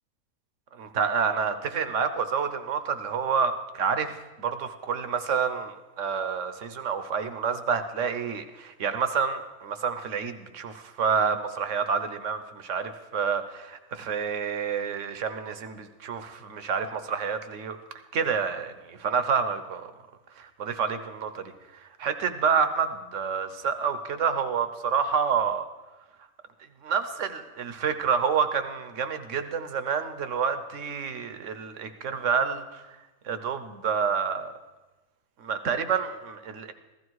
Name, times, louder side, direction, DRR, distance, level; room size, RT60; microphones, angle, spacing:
voice 1, 0.7-17.8 18.1-19.9 20.4-21.5 22.0-25.7 26.8-32.8 33.2-34.5 35.4-36.7, right 6 dB, 60° right, 9 dB, 1.2 m, -28 dB
15.5 x 13.5 x 4.7 m, 1.1 s
omnidirectional pair, 1.5 m